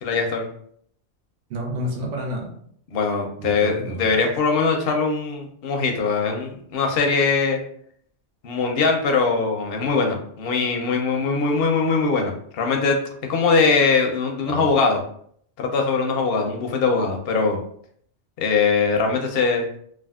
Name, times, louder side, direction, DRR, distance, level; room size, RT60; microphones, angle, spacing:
voice 1, 0.0-0.4 2.9-7.6 8.4-13.0 13.3-15.0 15.6-17.6 18.4-19.7, left 4 dB, 65° left, 3 dB, 0.7 m, -21 dB
voice 2, 1.5-2.5 3.4-4.2 14.4-14.7, equal, 75° right, 0 dB, 1.0 m, -30 dB
3.4 x 2.3 x 2.3 m, 0.63 s
omnidirectional pair, 1.3 m